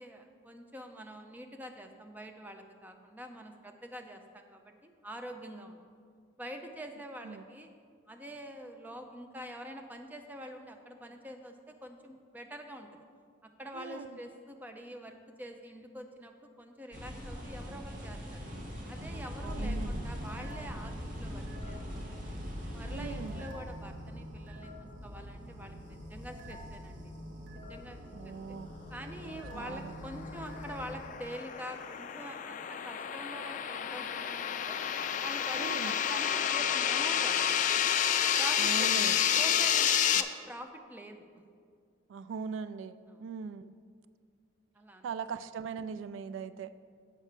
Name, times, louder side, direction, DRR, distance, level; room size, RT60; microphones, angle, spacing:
voice 1, 0.0-5.8 6.4-7.7 8.1-12.9 13.4-18.4 18.9-22.2 22.7-24.7 25.0-27.1 27.5-28.3 28.9-34.8 35.2-37.6 38.4-39.1 39.4-41.3 43.1-43.2 44.8-45.1, equal, 10° right, 4 dB, 0.5 m, -45 dB
voice 2, 13.7-14.2 19.4-20.1 22.9-23.5 28.1-28.7 29.5-29.9 35.5-35.9 38.6-39.3 40.1-40.2 42.1-43.7 45.0-46.7, right 5 dB, 85° right, 14 dB, 0.3 m, -40 dB
sound 1, 16.9-23.5, equal, 45° right, 1.5 m, -41 dB
sound 2, 18.9-31.0, equal, 65° right, 1.2 m, -45 dB
sound 3, 29.8-40.2, left 9 dB, 40° left, 0.3 m, -30 dB
7.2 x 5.5 x 6.6 m, 2.1 s
head